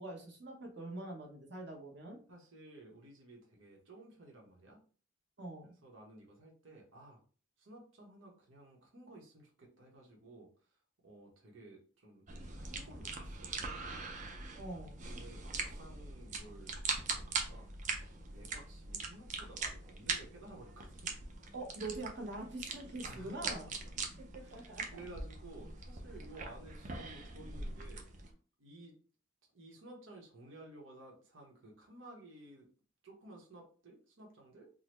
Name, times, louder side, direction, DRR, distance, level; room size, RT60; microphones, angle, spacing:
voice 1, 0.0-2.2 5.4-5.7 14.6-15.0 21.5-23.7 24.3-24.8, right 2 dB, 60° right, -1 dB, 1.1 m, -44 dB
voice 2, 2.3-4.8 5.8-7.2 7.6-12.2 12.6-14.1 15.1-18.0 18.2-21.1 23.0-23.9 24.4-28.1 28.6-28.9 29.5-32.7 33.0-34.7, right 1 dB, 85° right, -1 dB, 1.1 m, -55 dB
sound 1, 12.3-28.3, right 4 dB, 40° right, 0.5 m, -42 dB
3.7 x 2.1 x 3.0 m, 0.40 s
head